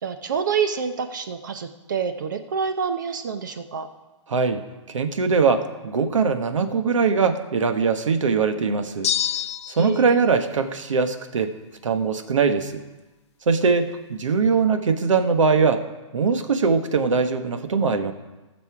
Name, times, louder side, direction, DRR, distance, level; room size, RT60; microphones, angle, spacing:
voice 1, 0.0-3.9 9.8-10.2, right 6 dB, 40° right, 8 dB, 0.6 m, -27 dB
voice 2, 4.3-4.6 4.9-9.1 9.8-11.5 11.8-12.7 13.5-15.8 16.1-18.1, right 5 dB, 75° right, 8 dB, 1.2 m, -21 dB
sound 1, 9.0-10.0, left 10 dB, 60° left, 0.8 m, -26 dB
16.5 x 6.8 x 4.8 m, 1.1 s
hypercardioid pair, 170°, 16 cm